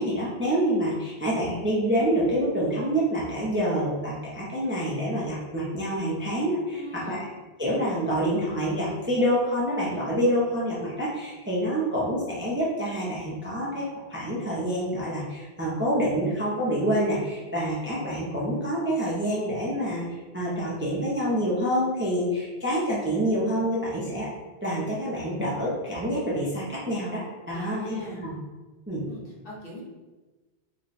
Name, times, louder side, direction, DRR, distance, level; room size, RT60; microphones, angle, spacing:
voice 1, 0.0-6.8 7.1-7.2 7.6-13.8 14.1-20.0 20.3-24.3 24.6-27.2 27.5-28.3 28.9-29.1, equal, 15° right, -6 dB, 0.5 m, -27 dB
voice 2, 6.7-7.3 27.5-28.2 29.1-29.8, left 1 dB, 55° left, -5 dB, 1.1 m, -40 dB
3.3 x 2.2 x 4.0 m, 1.2 s
omnidirectional pair, 1.1 m